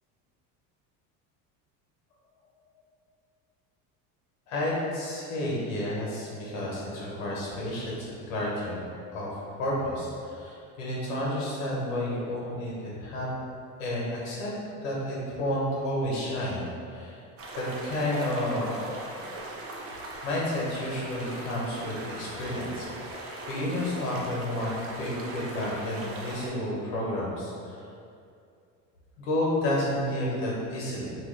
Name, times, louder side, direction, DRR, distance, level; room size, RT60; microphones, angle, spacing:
voice 1, 4.5-8.9 9.1-9.3 9.6-13.3 13.8-14.5 14.8-17.2 17.5-18.9 20.2-27.9 29.2-31.2, left 1 dB, 85° left, -5 dB, 1.0 m, -31 dB
sound 1, 17.4-26.5, right 2 dB, 35° right, 0.5 m, -40 dB
3.0 x 2.3 x 3.2 m, 2.5 s
supercardioid pair, 115°, 39 cm